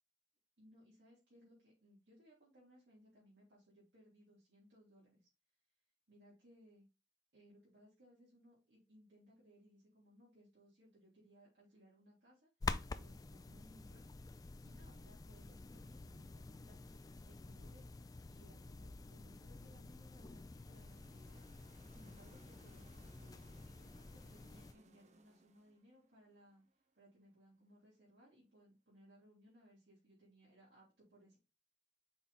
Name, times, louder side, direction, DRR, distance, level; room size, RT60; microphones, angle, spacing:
voice 1, 0.6-5.3 6.1-6.8 7.3-12.5 12.9-14.0 14.6-21.4 21.9-22.9 23.2-26.6 26.9-31.4, equal, 70° right, -8 dB, 3.2 m, -65 dB
sound 1, 12.6-24.7, left 3 dB, 20° left, 0.3 m, -49 dB
sound 2, 19.7-27.3, right 3 dB, 40° right, 0.7 m, -69 dB
5.9 x 3.8 x 4.2 m, 0.30 s
head